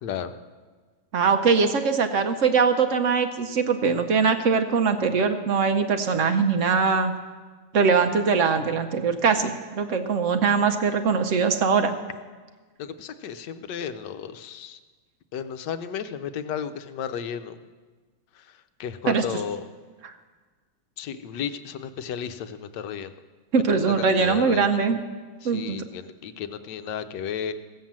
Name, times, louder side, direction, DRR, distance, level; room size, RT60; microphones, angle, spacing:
voice 1, 0.0-0.3 12.8-14.8 15.3-17.6 18.8-19.6 21.0-23.1 23.7-24.8 25.4-27.5, left 8 dB, 70° left, 10 dB, 1.2 m, -33 dB
voice 2, 1.1-7.1 7.7-11.9 19.0-19.2 23.5-25.0 25.4-25.8, right 5 dB, 65° right, 8 dB, 0.7 m, -22 dB
16.5 x 7.6 x 7.3 m, 1.4 s
omnidirectional pair, 2.2 m